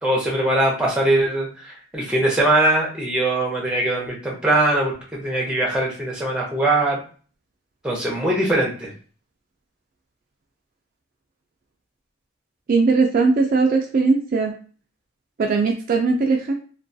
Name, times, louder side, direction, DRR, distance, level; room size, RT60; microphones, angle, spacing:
voice 1, 0.0-4.9 5.2-7.0 7.8-8.9, right 1 dB, 5° right, -3 dB, 0.6 m, -21 dB
voice 2, 12.7-14.5 15.4-16.5, right 4 dB, 45° right, 2 dB, 0.3 m, -19 dB
2.3 x 2.2 x 2.6 m, 0.40 s
head